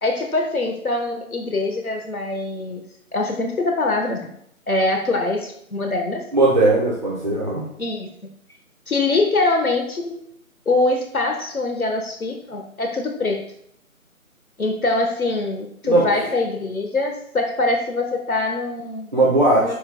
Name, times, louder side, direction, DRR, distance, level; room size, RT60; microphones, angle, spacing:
voice 1, 0.0-2.8 3.1-4.3 4.7-6.2 7.8-8.1 8.9-10.2 10.6-13.4 14.6-19.2 19.6-19.7, left 2 dB, 80° left, 3 dB, 1.6 m, -23 dB
voice 2, 6.3-7.6 15.8-16.1 19.1-19.7, right 2 dB, 30° right, -5 dB, 1.3 m, -18 dB
9.8 x 7.1 x 2.3 m, 0.69 s
figure-of-eight pair, 180°, 43 cm